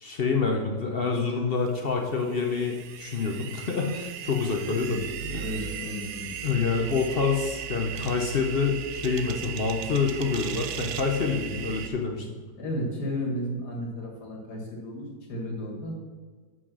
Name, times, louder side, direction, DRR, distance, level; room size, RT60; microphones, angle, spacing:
voice 1, 0.0-5.0 5.3-5.4 6.4-12.3, left 5 dB, 50° left, 2 dB, 0.7 m, -27 dB
sound 1, 1.7-11.9, right 9 dB, 75° right, 1.1 m, -37 dB
voice 2, 4.7-5.0 5.3-6.3 12.6-15.9, equal, 75° left, 0 dB, 2.2 m, -33 dB
6.2 x 5.8 x 6.1 m, 1.5 s
omnidirectional pair, 1.8 m